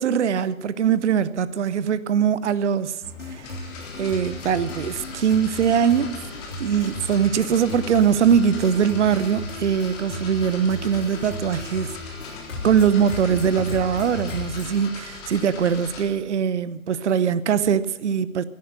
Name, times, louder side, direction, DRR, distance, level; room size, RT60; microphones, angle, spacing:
voice 1, 0.0-3.0 3.3-3.5 4.0-6.2 6.6-12.0 12.6-18.4, right 7 dB, 55° right, 0.7 m, -22 dB
sound 1, 3.0-14.8, left 3 dB, 60° left, 3.6 m, -36 dB
sound 2, 3.4-16.0, left 3 dB, 30° left, 3.8 m, -40 dB
16.0 x 10.5 x 6.5 m
figure-of-eight pair, 130°, 42 cm